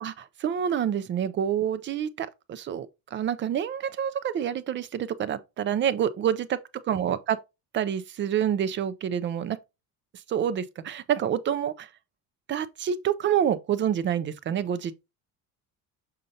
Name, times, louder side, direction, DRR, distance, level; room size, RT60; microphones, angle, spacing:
voice 1, 0.0-7.4 7.7-9.6 10.3-11.9 12.5-15.1, right 9 dB, 35° right, 0.4 m, -28 dB
6.6 x 5.1 x 2.7 m
cardioid pair, 170°, 34 cm